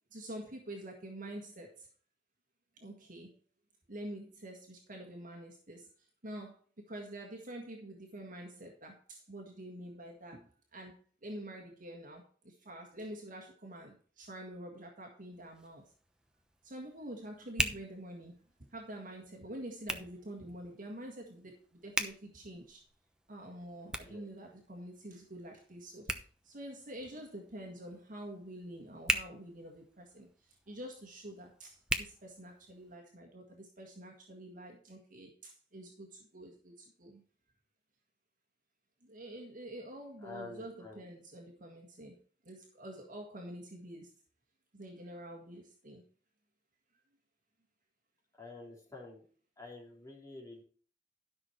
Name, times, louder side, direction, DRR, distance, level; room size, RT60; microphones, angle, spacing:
voice 1, 0.1-1.9 2.8-3.4 3.9-6.6 6.9-15.8 16.6-18.4 18.7-22.8 23.3-37.2 39.0-42.2 42.4-44.1 44.7-46.0, right 1 dB, 50° right, 1 dB, 1.7 m, -47 dB
Hands, 15.3-33.0, right 1 dB, 5° right, 0.9 m, -42 dB
voice 2, 40.2-41.0 48.4-49.2 49.6-50.6, left 3 dB, 20° left, -3 dB, 3.8 m, -48 dB
12.5 x 6.2 x 4.5 m, 0.44 s
head